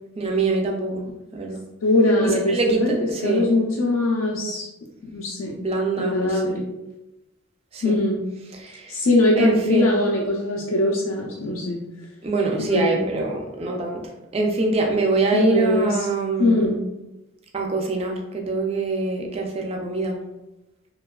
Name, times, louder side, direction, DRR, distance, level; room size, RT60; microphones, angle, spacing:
voice 1, 0.2-1.1 1.3-1.6 2.3-3.5 5.6-6.6 7.7-8.0 8.5-8.9 9.4-10.0 12.2-16.6 17.5-20.2, right 3 dB, 30° right, 1 dB, 0.3 m, -24 dB
voice 2, 1.8-2.9 3.2-4.6 5.1-5.5 6.0-6.6 7.8-8.2 8.9-11.8 12.6-13.0 15.3-16.1 16.4-16.8, left 1 dB, 75° left, -3 dB, 0.4 m, -21 dB
2.8 x 2.2 x 2.3 m, 0.94 s
head